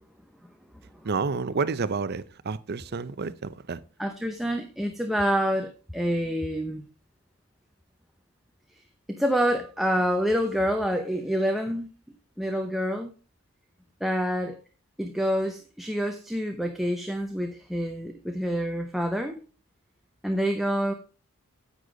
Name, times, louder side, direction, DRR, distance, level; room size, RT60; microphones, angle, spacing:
voice 1, 1.0-3.8, right 4 dB, 45° right, 0.6 m, -30 dB
voice 2, 4.0-6.8 9.1-11.9 12.4-13.1 14.0-14.6 15.0-19.4 20.2-20.9, equal, ahead, 0.7 m, -27 dB
9.9 x 8.0 x 3.8 m
head